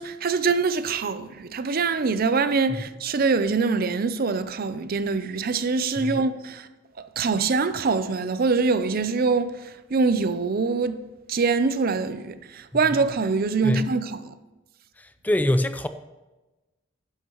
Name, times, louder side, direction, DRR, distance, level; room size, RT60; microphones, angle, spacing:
voice 1, 0.0-6.7 7.2-11.0 11.3-14.3, right 4 dB, 50° right, 0.5 m, -24 dB
voice 2, 15.0-15.9, left 1 dB, 10° left, 0.4 m, -24 dB
12.5 x 10.0 x 3.0 m
head